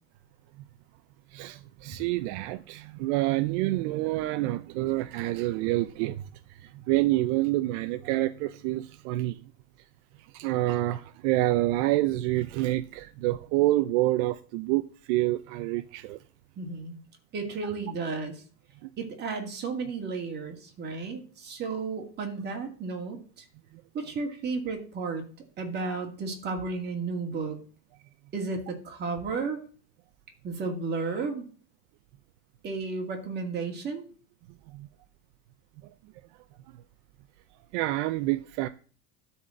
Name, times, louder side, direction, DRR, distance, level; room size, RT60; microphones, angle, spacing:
voice 1, 1.3-6.2 6.6-9.4 10.3-16.2 18.8-18.9 34.7-34.9 37.7-38.7, right 17 dB, 70° right, 0.7 m, -27 dB
voice 2, 16.6-17.0 17.3-18.4 19.0-23.4 23.9-25.2 25.6-27.6 28.3-29.6 30.4-31.5 32.6-34.0, right 4 dB, 30° right, 2.5 m, -33 dB
12.0 x 4.4 x 7.6 m
cardioid pair, 165°, 36 cm